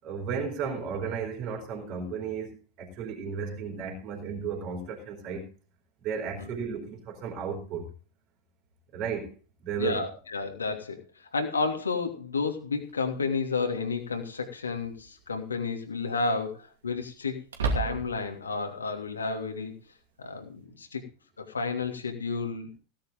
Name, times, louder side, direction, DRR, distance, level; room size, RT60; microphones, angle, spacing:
voice 1, 0.0-5.5 6.0-7.9 8.9-9.3 9.6-10.0, right 6 dB, 40° right, 4.0 m, -34 dB
voice 2, 9.8-17.3 17.7-19.7 20.2-21.0 21.4-22.7, left 4 dB, 75° left, 2.8 m, -31 dB
sound 1, 12.9-13.0 14.8-15.2 15.6-15.7 17.5-18.4, right 4 dB, 65° right, 2.7 m, -31 dB
16.5 x 10.5 x 3.8 m
figure-of-eight pair, 90°, 0 cm